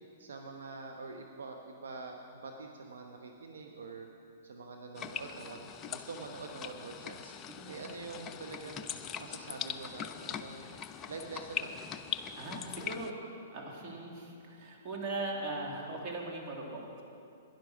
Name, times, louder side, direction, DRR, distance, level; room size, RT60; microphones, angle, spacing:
voice 1, 0.2-4.1 4.4-7.3 7.7-8.9 9.2-10.8 11.1-11.8, right 3 dB, 70° right, 2 dB, 0.9 m, -45 dB
sound 1, 5.0-13.1, left 8 dB, 25° left, 0.5 m, -41 dB
voice 2, 12.4-17.0, right 2 dB, 35° right, -2 dB, 2.5 m, -40 dB
11.5 x 10.5 x 6.0 m, 2.6 s
hypercardioid pair, 115°, 0 cm